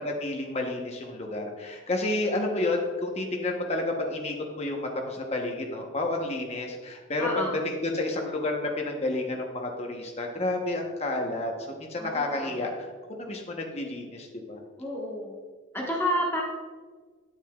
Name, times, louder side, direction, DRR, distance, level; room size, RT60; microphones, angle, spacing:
voice 1, 0.0-11.5 11.8-14.6, left 2 dB, 30° left, 1 dB, 1.0 m, -30 dB
voice 2, 7.2-7.6 12.0-12.6 14.8-15.4 15.7-16.4, equal, 10° left, -3 dB, 1.3 m, -30 dB
9.1 x 7.9 x 2.4 m, 1.5 s
head